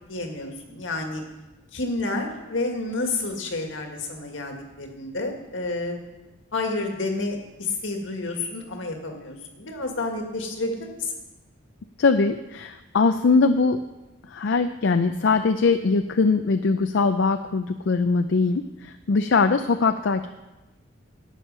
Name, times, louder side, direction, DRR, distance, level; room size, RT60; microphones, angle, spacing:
voice 1, 0.1-1.2 1.7-6.0 6.5-11.1, left 2 dB, 85° left, 3 dB, 1.9 m, -30 dB
voice 2, 12.0-13.8 14.3-20.3, left 4 dB, 70° left, 8 dB, 0.5 m, -21 dB
11.0 x 8.5 x 5.5 m, 1.1 s
head